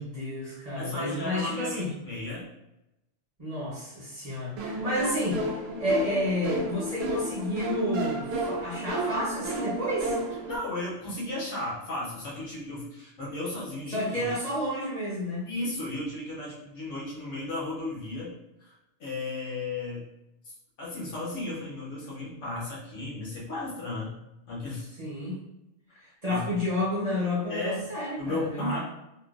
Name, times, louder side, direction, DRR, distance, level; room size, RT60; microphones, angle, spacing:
voice 1, 0.0-1.9 3.4-10.2 13.9-15.5 25.0-25.4 26.0-28.8, left 1 dB, 35° right, -8 dB, 1.1 m, -31 dB
voice 2, 0.7-2.5 10.5-14.3 15.5-18.3 18.6-18.7 19.0-20.0 20.4-24.1 24.5-25.0 26.3-26.5 27.5-27.9 28.2-28.8, left 2 dB, 80° left, -6 dB, 1.4 m, -34 dB
sound 1, 4.6-10.6, right 1 dB, 65° right, 0.8 m, -32 dB
3.6 x 2.4 x 2.4 m, 0.91 s
omnidirectional pair, 1.2 m